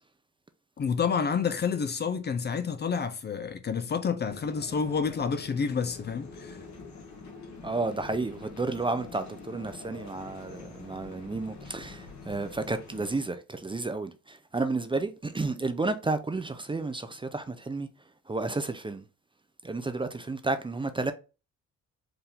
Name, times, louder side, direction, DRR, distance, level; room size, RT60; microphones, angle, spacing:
voice 1, 0.8-6.6, left 6 dB, 35° left, 0.5 m, -29 dB
sound 1, 4.2-13.2, left 4 dB, 65° left, 1.7 m, -46 dB
voice 2, 7.6-17.9 18.3-19.0 19.6-21.1, right 3 dB, 15° right, 0.5 m, -31 dB
4.7 x 2.6 x 3.5 m
cardioid pair, 90°, 30 cm